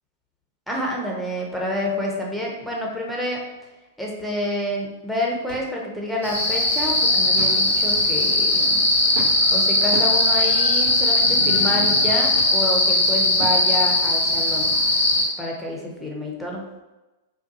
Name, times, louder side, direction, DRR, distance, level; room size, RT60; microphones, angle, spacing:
voice 1, 0.7-3.4 4.0-8.8 9.5-14.7 15.4-16.6, left 1 dB, ahead, -2 dB, 0.6 m, -28 dB
sound 1, 5.5-5.7 6.2-6.3 7.4-7.6 7.9-8.2 9.1-9.4 9.9-10.2 10.8-11.1 11.6-11.8 12.4-12.6 13.4-13.7 14.4-14.5, right 2 dB, 75° right, 0.8 m, -36 dB
sound 2, 6.2-15.3, left 2 dB, 85° left, 0.6 m, -19 dB
2.6 x 2.2 x 2.5 m, 1.1 s
figure-of-eight pair, 100°, 0 cm